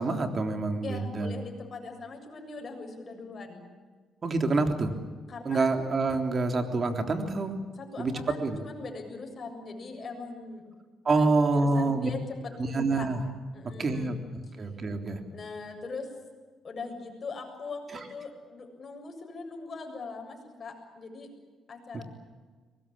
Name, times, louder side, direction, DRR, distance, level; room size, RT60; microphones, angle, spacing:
voice 1, 0.0-1.3 4.2-4.9 5.5-7.5 8.0-8.6 11.1-12.1 12.6-13.2 13.8-14.1 14.6-15.2 21.9-22.0, right 3 dB, 40° right, 5 dB, 3.5 m, -27 dB
voice 2, 0.8-3.6 5.3-5.7 7.7-10.6 11.1-13.1 13.5-14.1 14.5-14.6 15.3-16.1 16.6-21.3 21.7-22.0, left 4 dB, 40° left, 3 dB, 7.3 m, -41 dB
23.5 x 20.5 x 8.8 m, 1.5 s
cardioid pair, 90°, 0 cm